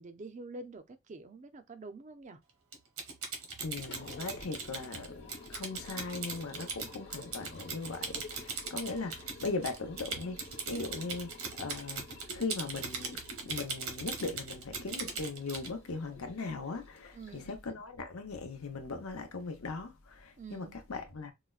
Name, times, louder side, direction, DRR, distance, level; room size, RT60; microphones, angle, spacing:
voice 1, 0.0-2.4 17.1-17.6 20.4-20.8, right 3 dB, 35° right, 0.4 m, -47 dB
Typing, 2.7-15.7, right 4 dB, 75° right, 1.0 m, -40 dB
voice 2, 3.6-21.3, left 3 dB, 75° left, 0.8 m, -39 dB
Liquid, 3.6-17.7, left 3 dB, 50° left, 1.0 m, -52 dB
4.7 x 2.1 x 2.3 m
head